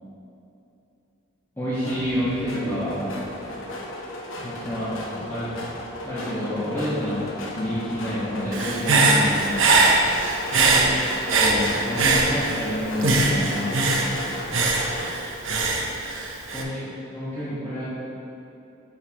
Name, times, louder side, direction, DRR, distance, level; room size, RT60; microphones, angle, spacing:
voice 1, 1.6-3.5 4.4-5.0 5.3-5.5 6.0-9.7 10.6-10.9 11.4-13.9 16.5-18.0, equal, 10° left, -13 dB, 1.5 m, -29 dB
sound 1, 1.7-15.1, left 1 dB, 75° left, 1.0 m, -35 dB
Human voice / Breathing, 8.5-12.7 13.0-16.6, right 3 dB, 75° right, 0.8 m, -21 dB
9.4 x 6.4 x 3.0 m, 2.8 s
head